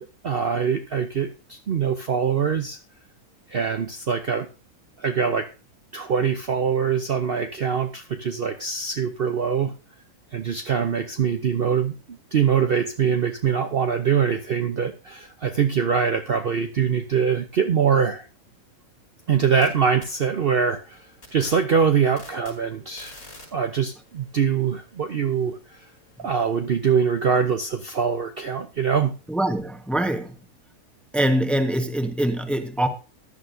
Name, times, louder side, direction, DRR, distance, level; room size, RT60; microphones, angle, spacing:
voice 1, 0.0-2.8 3.5-4.5 5.0-5.5 5.9-9.7 10.3-12.0 12.3-18.2 19.3-21.0 21.3-23.1 23.5-25.6 26.2-29.1, right 7 dB, 50° right, 0.8 m, -23 dB
sound 1, 19.2-19.7 20.0-26.6, left 1 dB, 80° left, 5.6 m, -50 dB
voice 2, 29.3-30.4 31.1-32.9, right 1 dB, ahead, 1.1 m, -23 dB
14.5 x 11.0 x 2.7 m
omnidirectional pair, 1.5 m